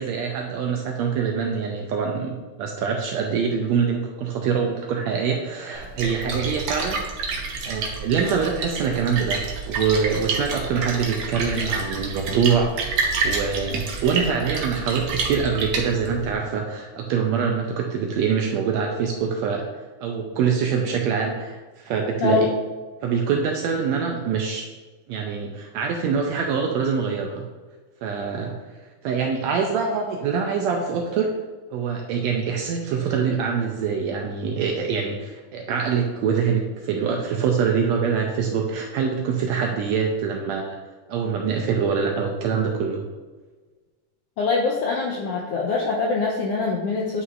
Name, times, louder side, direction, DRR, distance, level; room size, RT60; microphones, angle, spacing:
voice 1, 0.0-7.1 7.7-19.7 20.0-22.5 23.0-24.7 25.1-27.5 28.0-28.5 29.0-31.3 31.7-40.8 41.1-43.1, right 6 dB, 80° right, 2 dB, 1.6 m, -24 dB
Splash splatter, 5.7-16.3, right 4 dB, 65° right, 1.6 m, -29 dB
voice 2, 44.4-47.2, left 4 dB, 80° left, -2 dB, 1.4 m, -23 dB
9.5 x 5.5 x 2.5 m, 1.3 s
omnidirectional pair, 3.6 m